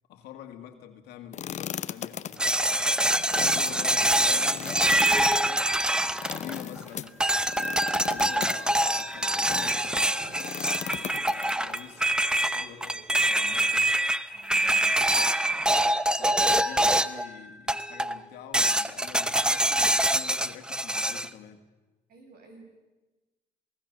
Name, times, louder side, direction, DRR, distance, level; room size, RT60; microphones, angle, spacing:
voice 1, 0.1-2.6 3.1-5.8 6.3-7.2 7.5-10.7 11.2-13.9 14.6-21.6, left 9 dB, 85° left, 5 dB, 2.0 m, -46 dB
sound 1, 1.3-9.9 10.3-11.8, left 9 dB, 45° left, 0.8 m, -37 dB
sound 2, 2.4-6.8 7.2-17.3 17.7-18.2 18.5-21.3, right 1 dB, 5° right, 0.7 m, -25 dB
Walk footsteps / Chatter / Squeak, 6.4-14.1, right 4 dB, 40° right, 3.3 m, -52 dB
voice 2, 14.3-14.8 22.1-22.6, right 3 dB, 65° right, 3 dB, 7.2 m, -53 dB
28.0 x 18.5 x 6.7 m, 1.1 s
cardioid pair, 110°, 17 cm